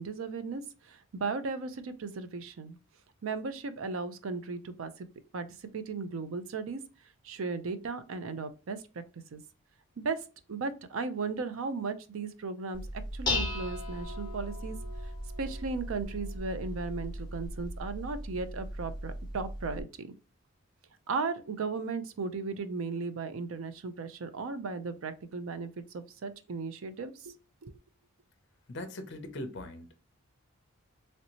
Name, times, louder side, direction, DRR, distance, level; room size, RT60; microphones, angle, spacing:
voice 1, 0.0-2.8 3.2-5.1 5.3-6.8 7.2-8.8 9.3-9.4 10.0-14.8 15.4-20.1 21.1-27.3 27.6-27.7, right 4 dB, 65° right, 0.4 m, -36 dB
Dishes pots and pans, 12.7-19.8, left 1 dB, 20° left, 0.8 m, -37 dB
voice 2, 28.7-29.9, left 1 dB, 50° left, 0.6 m, -40 dB
3.2 x 2.7 x 2.9 m
head